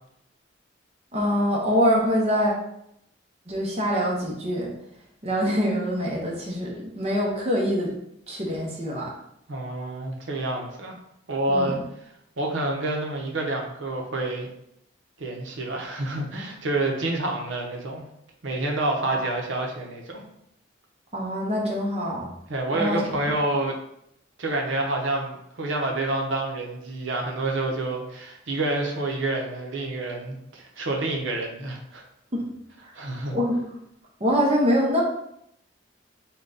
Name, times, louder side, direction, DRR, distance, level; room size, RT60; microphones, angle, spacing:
voice 1, 1.1-2.5 3.5-4.7 5.2-7.9 8.3-9.1 11.5-11.7 19.1-19.3 21.1-22.3 22.7-23.0 32.3-32.4 32.8-32.9 33.3-33.6 34.2-35.0, equal, 35° right, -2 dB, 0.8 m, -24 dB
voice 2, 9.5-11.0 11.3-11.8 12.4-14.5 15.2-18.0 18.4-20.2 22.5-23.8 24.4-32.0 32.9-33.4, right 2 dB, 75° right, 1 dB, 0.7 m, -28 dB
3.8 x 2.2 x 3.8 m, 0.78 s
head